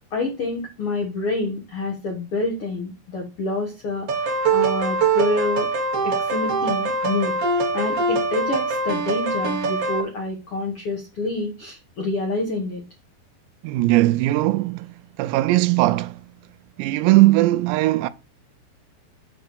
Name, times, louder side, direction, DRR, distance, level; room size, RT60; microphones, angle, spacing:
voice 1, 0.1-5.7 6.0-12.8, left 2 dB, 85° left, 1.2 m, -27 dB
sound 1, 4.1-10.0, right 3 dB, 60° right, 1.6 m, -23 dB
voice 2, 13.6-16.3 16.8-18.1, right 18 dB, 85° right, 2.7 m, -19 dB
7.8 x 4.3 x 6.6 m
omnidirectional pair, 5.1 m